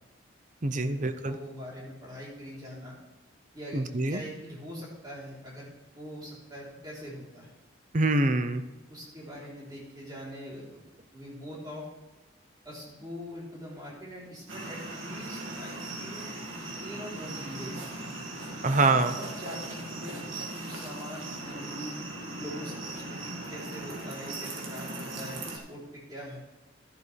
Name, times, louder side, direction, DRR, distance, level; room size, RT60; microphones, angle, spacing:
voice 1, 0.6-1.4 3.7-4.2 7.9-8.6 18.6-19.2, right 2 dB, 40° right, 10 dB, 0.7 m, -25 dB
voice 2, 1.2-3.0 3.5-5.7 6.0-7.5 8.9-10.8 11.1-11.9 12.6-18.0 19.2-22.0 22.4-25.8 26.1-26.4, equal, 20° right, -5 dB, 3.5 m, -43 dB
sound 1, 14.5-25.6, right 2 dB, 85° right, 2.1 m, -39 dB
13.0 x 11.0 x 3.4 m, 1.1 s
head